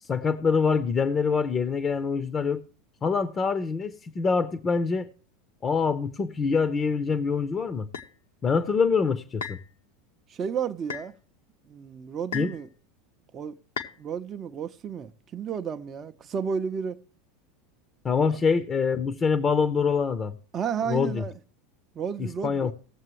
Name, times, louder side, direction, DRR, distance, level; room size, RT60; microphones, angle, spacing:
voice 1, 0.0-2.6 3.0-5.1 5.6-7.9 8.4-9.6 12.3-12.5 18.0-20.4 20.9-21.3 22.4-22.7, left 5 dB, 25° left, 0.7 m, -25 dB
sound 1, 7.9-8.1 9.4-9.7 10.9-11.1 12.3-12.6 13.8-14.0, left 7 dB, 70° left, 0.8 m, -35 dB
voice 2, 10.3-11.1 11.7-12.7 13.3-13.6 14.0-17.0 20.5-21.3 21.9-22.7, right 7 dB, 30° right, 0.6 m, -32 dB
18.0 x 7.4 x 3.0 m
figure-of-eight pair, 80°, 0 cm